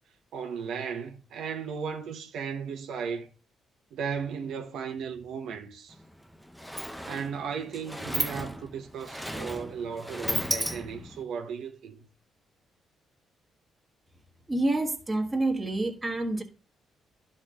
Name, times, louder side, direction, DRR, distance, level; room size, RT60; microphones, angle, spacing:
voice 1, 0.3-3.3 3.9-5.9 7.0-12.0, right 6 dB, 75° right, 1.0 m, -35 dB
Sliding door, 5.9-6.0 6.3-11.2, equal, ahead, 0.7 m, -34 dB
voice 2, 14.5-16.4, right 2 dB, 15° right, 1.4 m, -28 dB
11.5 x 4.3 x 3.7 m
cardioid pair, 90°, 0 cm